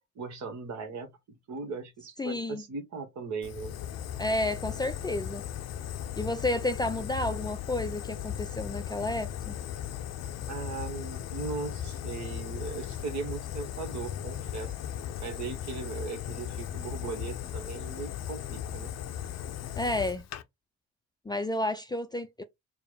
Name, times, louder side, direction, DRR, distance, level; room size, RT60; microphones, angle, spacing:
voice 1, 0.1-3.8 8.9-9.1 10.5-14.7 15.2-19.0, right 4 dB, 65° right, 1.2 m, -38 dB
voice 2, 2.2-2.6 4.2-5.4 6.2-9.6 19.8-20.2 21.3-22.4, left 1 dB, 15° left, 0.4 m, -31 dB
Fire, 3.4-20.4, left 10 dB, 60° left, 0.6 m, -37 dB
4.7 x 2.1 x 3.3 m
supercardioid pair, 75°, 30 cm